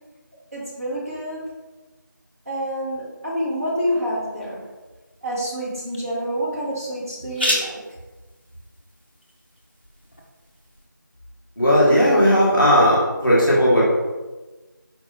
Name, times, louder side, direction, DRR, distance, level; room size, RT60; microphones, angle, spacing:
voice 1, 0.5-1.4 2.4-4.7 5.2-7.8, equal, 45° right, -6 dB, 1.4 m, -27 dB
sound 1, 3.3-10.9, left 1 dB, 30° left, 0.5 m, -34 dB
voice 2, 11.6-13.8, equal, 5° right, -19 dB, 1.0 m, -16 dB
4.5 x 3.2 x 2.9 m, 1.2 s
figure-of-eight pair, 175°, 11 cm